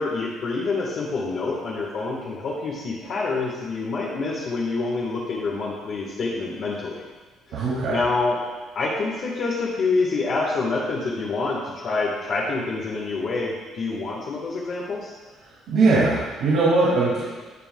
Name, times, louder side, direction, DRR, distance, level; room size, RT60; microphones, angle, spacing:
voice 1, 0.0-7.0 7.9-8.4 8.7-15.1, left 3 dB, 50° left, -4 dB, 1.3 m, -27 dB
voice 2, 7.5-8.0 15.7-17.2, right 3 dB, 75° right, -8 dB, 2.2 m, -20 dB
16.5 x 5.5 x 2.2 m, 1.3 s
cardioid pair, 140°, 0 cm